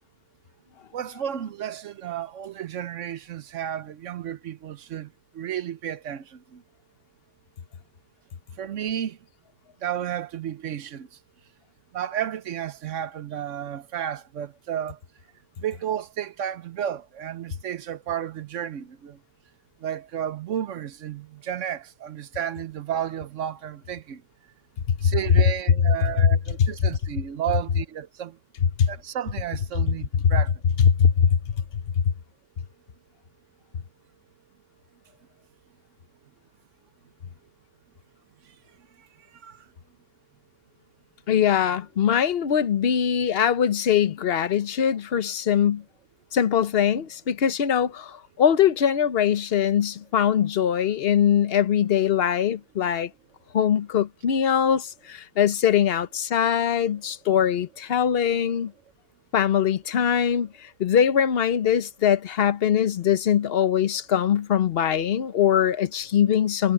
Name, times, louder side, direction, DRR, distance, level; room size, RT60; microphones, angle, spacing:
voice 1, 0.9-6.6 8.6-9.2 9.8-11.2 11.9-15.0 15.6-19.2 19.8-24.2 25.0-28.4 28.9-30.5 38.4-38.6 39.0-39.7, right 10 dB, 55° right, 0.9 m, -32 dB
voice 2, 30.9-31.4 32.0-32.1 41.3-45.8 46.3-53.1 53.5-58.7 59.3-66.7, left 8 dB, 45° left, 0.8 m, -22 dB
omnidirectional pair, 1.8 m